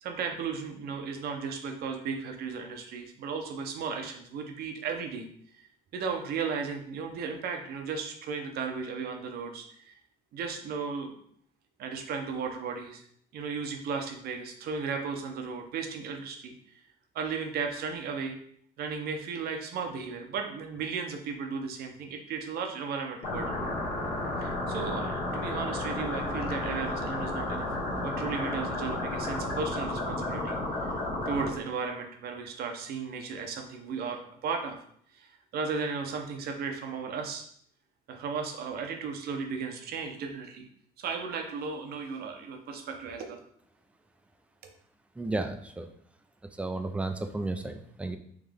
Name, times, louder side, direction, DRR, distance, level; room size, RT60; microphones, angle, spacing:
voice 1, 0.0-5.3 5.5-5.6 5.9-9.9 10.3-11.2 11.8-13.0 13.3-16.5 17.1-18.4 18.8-23.6 24.4-27.7 28.0-30.9 31.2-34.8 35.2-37.4 38.1-40.6 41.0-43.4, right 5 dB, 65° right, 4 dB, 0.8 m, -35 dB
sound 1, 23.2-31.5, left 2 dB, 55° left, 1.5 m, -32 dB
voice 2, 45.2-45.9 46.6-48.2, right 2 dB, 5° right, 6 dB, 0.4 m, -33 dB
3.6 x 3.1 x 3.4 m, 0.64 s
cardioid pair, 110°, 17 cm